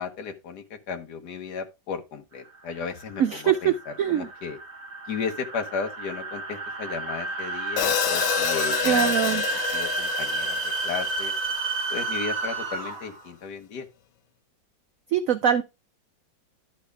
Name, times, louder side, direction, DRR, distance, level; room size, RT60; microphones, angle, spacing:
voice 1, 0.0-4.6 5.1-9.4 9.7-11.3 11.9-13.9, left 5 dB, 60° left, 1.7 m, -34 dB
sound 1, 2.5-13.2, right 3 dB, 35° right, 1.6 m, -30 dB
voice 2, 3.2-3.7 4.0-4.3 8.8-9.4 15.1-15.6, right 9 dB, 90° right, 0.7 m, -22 dB
Hi-hat, 7.8-11.9, left 12 dB, 80° left, 1.4 m, -29 dB
11.5 x 5.8 x 3.4 m
omnidirectional pair, 2.1 m